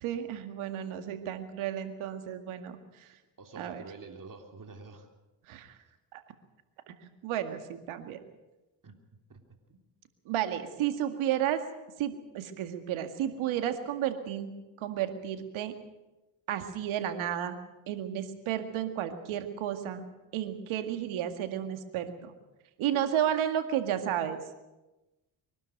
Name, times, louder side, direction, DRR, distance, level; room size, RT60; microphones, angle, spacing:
voice 1, 0.0-3.1 3.6-3.8 5.5-5.8 6.1-6.2 6.9-8.2 10.3-11.6 12.0-14.5 14.8-15.7 16.5-17.6 17.9-20.1 20.3-22.3 22.8-24.4, right 10 dB, 85° right, 8 dB, 2.1 m, -32 dB
voice 2, 3.0-5.1 8.8-9.0 9.3-9.8, right 4 dB, 40° right, 4 dB, 3.4 m, -48 dB
24.0 x 12.5 x 9.2 m, 1.1 s
supercardioid pair, 60°, 47 cm